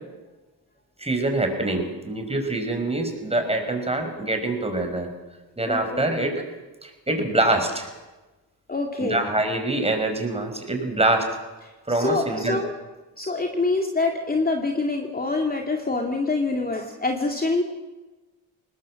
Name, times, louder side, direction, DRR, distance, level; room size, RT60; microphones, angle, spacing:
voice 1, 1.0-5.1 5.6-6.5 6.8-7.9 9.0-11.2 11.9-12.6, right 2 dB, 15° right, 5 dB, 5.4 m, -25 dB
voice 2, 5.7-6.1 8.7-9.3 11.9-12.7 13.2-17.6, left 3 dB, 20° left, 2 dB, 2.3 m, -25 dB
20.5 x 19.5 x 7.6 m, 1.2 s
cardioid pair, 70°, 40 cm